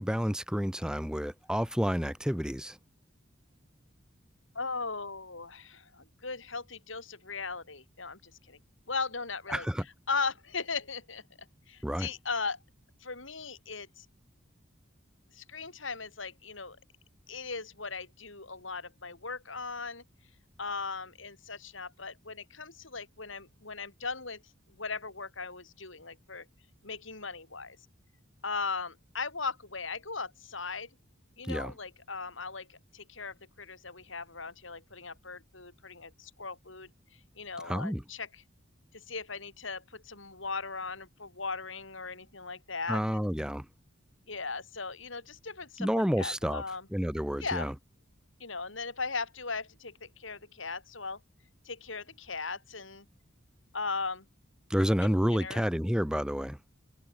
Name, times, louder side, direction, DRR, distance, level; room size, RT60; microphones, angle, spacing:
voice 1, 0.0-2.8 9.5-9.8 11.8-12.1 31.5-31.7 37.7-38.0 42.9-43.6 45.8-46.6 46.9-47.7 54.7-56.6, equal, 5° right, 3.1 m, -29 dB
voice 2, 4.5-8.6 8.9-11.2 11.7-12.6 13.0-14.1 15.3-16.8 17.3-20.0 20.6-24.4 24.8-26.5 26.8-27.8 28.4-30.9 31.4-36.9 37.4-38.4 38.9-43.3 44.3-46.9 47.4-47.7 48.4-51.2 51.6-53.1 53.7-54.2 55.3-55.6, left 4 dB, 75° left, 6.6 m, -38 dB
head